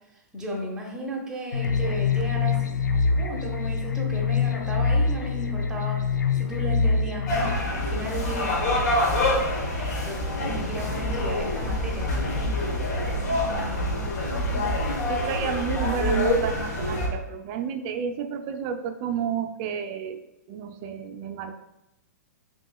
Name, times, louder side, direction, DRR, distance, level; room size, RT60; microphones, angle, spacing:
voice 1, 0.3-2.6 3.0-6.0 6.4-8.5 9.8-12.8 13.4-13.9, right 1 dB, 5° right, -3 dB, 1.0 m, -34 dB
sound 1, 1.5-7.6, left 5 dB, 90° left, 0.4 m, -25 dB
sound 2, 7.3-17.1, left 1 dB, 60° left, 1.3 m, -26 dB
voice 2, 15.1-20.2 20.5-21.5, right 8 dB, 40° right, 7 dB, 0.4 m, -31 dB
5.2 x 3.0 x 2.3 m, 0.91 s
hypercardioid pair, 120°, 10 cm